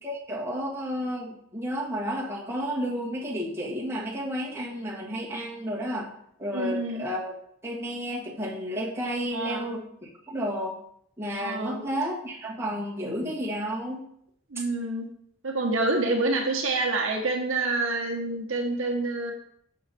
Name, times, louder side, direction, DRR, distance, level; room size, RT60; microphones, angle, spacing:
voice 1, 0.0-6.1 6.4-7.3 7.6-10.8 11.2-14.0, equal, 10° right, -6 dB, 1.5 m, -32 dB
voice 2, 6.5-7.0 9.3-9.7 11.4-11.8 14.5-15.1 15.4-19.3, right 2 dB, 65° right, 1 dB, 1.1 m, -27 dB
6.5 x 5.4 x 4.1 m, 0.69 s
head